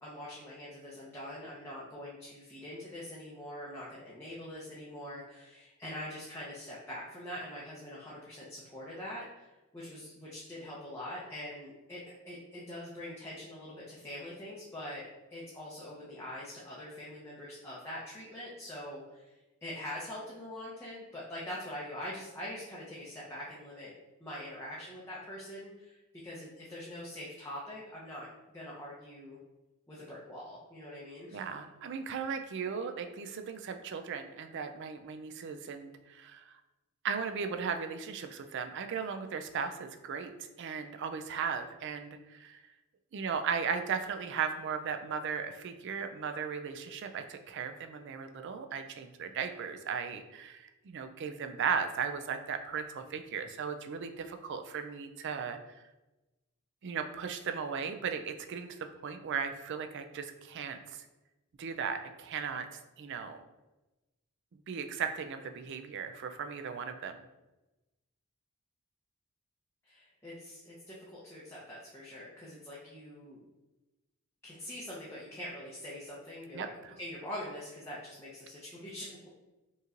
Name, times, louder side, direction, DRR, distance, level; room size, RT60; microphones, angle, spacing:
voice 1, 0.0-19.3 19.6-23.9 24.2-26.0 26.2-28.3 28.5-29.4 29.9-31.4 69.8-73.4 74.4-76.7 77.0-79.3, left 1 dB, 10° left, -8 dB, 0.7 m, -44 dB
voice 2, 31.3-36.5 37.0-42.6 43.1-55.9 56.8-61.1 61.6-63.4 64.7-67.3 76.5-76.9, right 6 dB, 55° right, 8 dB, 0.4 m, -37 dB
5.4 x 3.0 x 2.5 m, 1.1 s
head